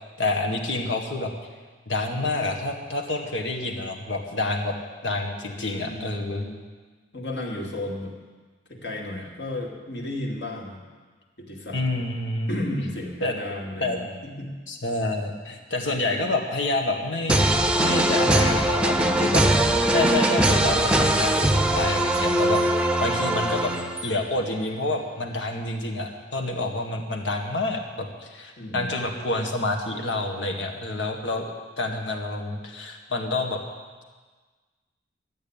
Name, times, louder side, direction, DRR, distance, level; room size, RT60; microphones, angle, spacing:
voice 1, 0.2-1.3 1.9-4.7 5.0-6.4 11.7-12.5 13.2-13.3 13.8-14.0 14.7-17.5 17.8-19.4 19.9-23.7 24.0-31.4 31.8-33.6, left 2 dB, 80° left, 3 dB, 1.8 m, -28 dB
voice 2, 5.5-6.6 7.1-8.1 8.7-10.8 11.4-11.8 12.5-14.5 18.2-18.7 18.9-19.1 22.2-22.4 28.6-29.0, left 1 dB, 65° left, 0 dB, 2.4 m, -34 dB
sound 1, 17.3-24.2, right 1 dB, 5° right, 0.7 m, -21 dB
13.0 x 8.8 x 8.8 m, 1.4 s
head